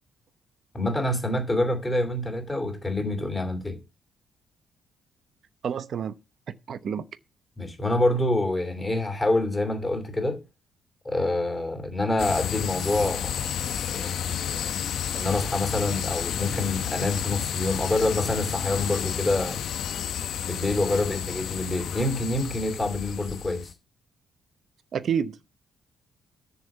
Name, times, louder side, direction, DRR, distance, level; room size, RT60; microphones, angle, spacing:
voice 1, 0.7-3.8 7.6-10.4 11.0-13.4 13.9-14.7 15.1-19.6 20.4-23.7, left 2 dB, 10° left, 2.7 m, -26 dB
voice 2, 5.6-6.2 6.5-7.0 24.9-25.4, right 7 dB, 45° right, 0.8 m, -29 dB
sound 1, 12.2-23.7, left 9 dB, 60° left, 1.0 m, -31 dB
7.0 x 6.9 x 7.9 m
cardioid pair, 155°, 0 cm